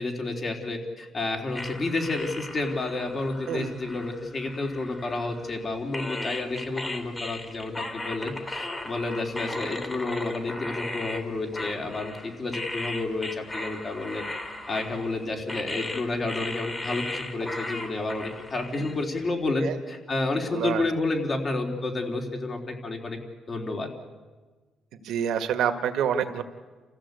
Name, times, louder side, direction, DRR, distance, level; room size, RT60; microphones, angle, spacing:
voice 1, 0.0-14.2 14.7-23.2 23.5-23.9, left 2 dB, 40° left, 2 dB, 3.8 m, -30 dB
sound 1, 1.5-5.6 5.9-19.2, left 2 dB, 25° left, 3.0 m, -36 dB
voice 2, 25.0-26.4, right 8 dB, 80° right, 7 dB, 1.8 m, -27 dB
28.0 x 15.5 x 8.3 m, 1.3 s
cardioid pair, 90°, 0 cm